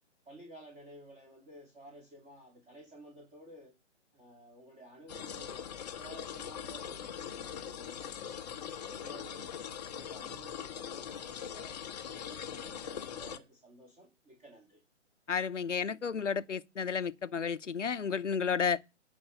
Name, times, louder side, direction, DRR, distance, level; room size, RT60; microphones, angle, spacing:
voice 1, 0.3-3.7 4.1-5.6 6.0-8.2 8.6-11.8 12.1-14.8, equal, 15° right, 2.9 m, -53 dB
sound 1, 5.1-13.4, left 8 dB, 35° left, 0.9 m, -42 dB
voice 2, 15.3-18.8, left 6 dB, 80° left, 0.9 m, -32 dB
9.8 x 5.4 x 8.0 m
figure-of-eight pair, 135°, 36 cm